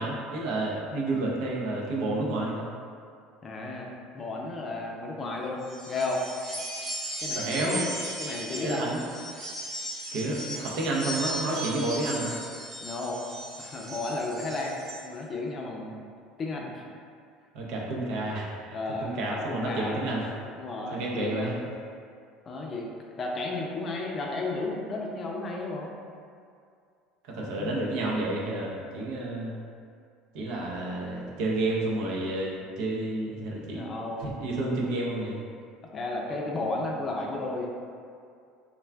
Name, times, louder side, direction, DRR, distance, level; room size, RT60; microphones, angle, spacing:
voice 1, 0.0-2.7 7.3-7.8 8.6-9.0 10.1-12.4 17.5-20.3 20.9-21.6 27.3-29.6 30.3-33.9 34.2-35.4, right 2 dB, 70° right, -3 dB, 0.5 m, -30 dB
voice 2, 3.4-6.2 7.2-7.9 8.2-9.0 12.8-13.3 13.6-15.9 16.4-16.8 18.7-20.0 20.6-21.6 22.5-22.9 23.2-25.9 27.4-27.8 33.3-33.4 33.7-34.3 35.9-37.7, left 2 dB, 35° left, -1 dB, 0.4 m, -33 dB
sound 1, 5.6-15.0, right 1 dB, 30° right, 0.7 m, -37 dB
2.3 x 2.2 x 3.3 m, 2.3 s
supercardioid pair, 95°, 0 cm